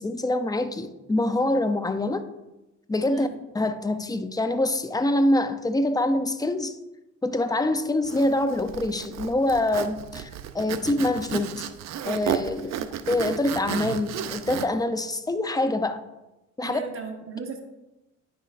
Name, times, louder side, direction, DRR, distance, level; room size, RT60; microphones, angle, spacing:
voice 1, 0.0-2.2 2.9-3.3 3.5-6.8 7.2-10.3 10.5-11.7 12.0-12.8 13.1-16.0 16.6-16.8, left 1 dB, 15° left, 9 dB, 0.5 m, -25 dB
Zipper (clothing), 8.0-14.7, right 9 dB, 60° right, 0.5 m, -33 dB
voice 2, 16.6-17.6, right 5 dB, 45° right, 2 dB, 1.1 m, -36 dB
9.3 x 5.9 x 2.5 m, 0.99 s
cardioid pair, 90°, 30 cm